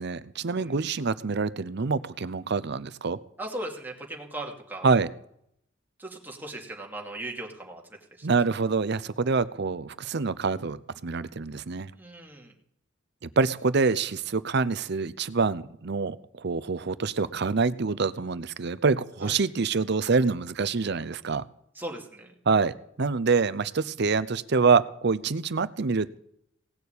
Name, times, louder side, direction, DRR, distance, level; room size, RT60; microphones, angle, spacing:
voice 1, 0.0-3.2 4.8-5.1 8.2-11.9 13.2-21.4 22.5-26.2, right 4 dB, 60° right, 16 dB, 0.7 m, -26 dB
voice 2, 3.4-4.9 6.0-7.8 8.2-8.3 11.9-12.5 19.2-19.4 21.7-22.3, right 1 dB, 10° right, 0 dB, 2.5 m, -38 dB
18.0 x 7.0 x 8.3 m, 0.71 s
head